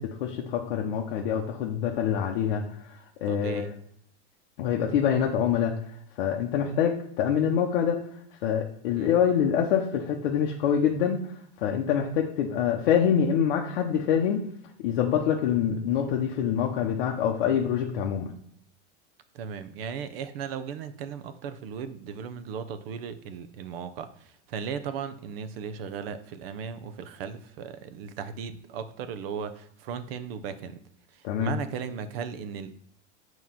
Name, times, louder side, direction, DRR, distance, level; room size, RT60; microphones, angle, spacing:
voice 1, 0.0-2.6 2.9-3.7 4.6-5.8 6.2-8.0 8.4-11.3 11.6-14.4 14.8-18.3 31.2-31.5, left 8 dB, 50° left, 1 dB, 0.8 m, -25 dB
voice 2, 3.2-3.7 9.0-9.1 19.3-30.8 31.1-32.7, right 7 dB, 55° right, 12 dB, 0.7 m, -36 dB
7.3 x 3.0 x 5.6 m, 0.69 s
supercardioid pair, 180°, 36 cm